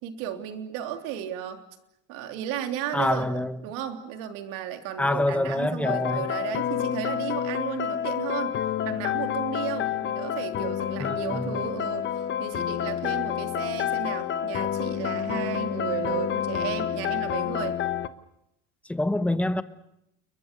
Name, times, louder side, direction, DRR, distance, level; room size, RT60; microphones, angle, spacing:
voice 1, 0.0-1.6 2.1-8.5 8.8-17.8, right 10 dB, 80° right, 3.3 m, -34 dB
voice 2, 2.9-3.6 5.0-6.3 11.0-11.6 18.9-19.6, left 1 dB, 5° left, 1.0 m, -26 dB
sound 1, 5.8-18.1, left 9 dB, 35° left, 1.1 m, -29 dB
29.5 x 22.5 x 6.8 m
cardioid pair, 140°, 32 cm